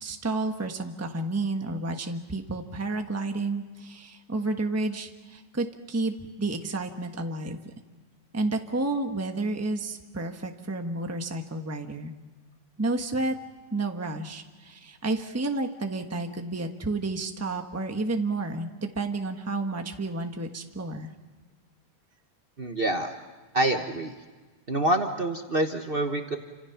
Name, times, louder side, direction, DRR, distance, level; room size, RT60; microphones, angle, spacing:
voice 1, 0.0-7.7 8.3-12.1 12.8-13.4 13.7-21.1, right 2 dB, 10° right, 5 dB, 1.2 m, -31 dB
voice 2, 22.6-23.2 23.5-24.1 24.7-26.4, right 1 dB, 35° right, 5 dB, 1.3 m, -26 dB
29.0 x 26.5 x 5.9 m, 1.3 s
omnidirectional pair, 1.8 m